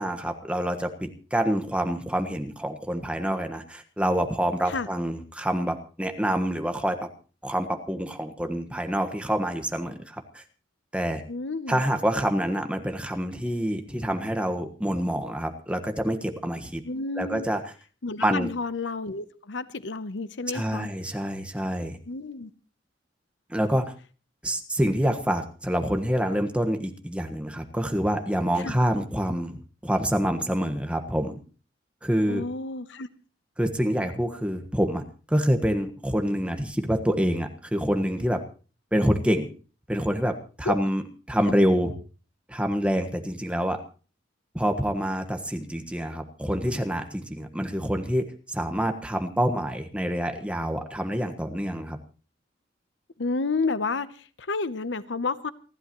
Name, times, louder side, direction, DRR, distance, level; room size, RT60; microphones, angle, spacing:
voice 1, 0.0-7.1 7.4-10.4 10.9-11.2 11.7-16.8 17.2-17.6 18.2-18.5 20.5-22.0 23.5-23.9 24.4-31.4 32.0-32.4 33.6-38.4 38.9-39.5 39.9-41.9 42.5-43.8 44.5-52.0, equal, 5° right, 1.4 m, -27 dB
voice 2, 11.3-11.8 16.8-17.5 18.0-20.9 22.0-22.5 28.6-28.8 32.3-33.1 40.6-40.8 41.5-41.6 53.2-55.5, left 3 dB, 75° left, 0.8 m, -31 dB
28.5 x 11.5 x 3.1 m
head